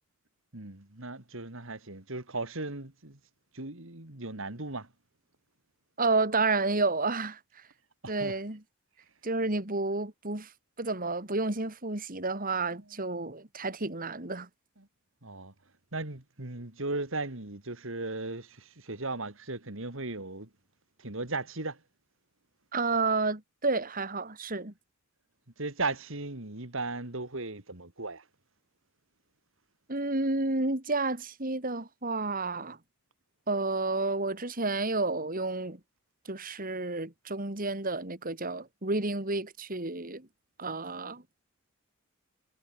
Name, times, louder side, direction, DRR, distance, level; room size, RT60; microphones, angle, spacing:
voice 1, 0.5-3.2 3.5-4.9 8.0-8.4 12.7-13.2 14.8-14.9 15.2-15.5 15.9-20.5 21.0-21.8 25.6-28.2, right 2 dB, 60° right, 2.8 m, -37 dB
voice 2, 6.0-7.4 8.1-8.6 9.2-10.5 10.8-14.5 22.7-24.7 29.9-32.8 33.5-35.8 36.3-40.3 40.6-41.2, right 3 dB, 40° right, 2.8 m, -30 dB
head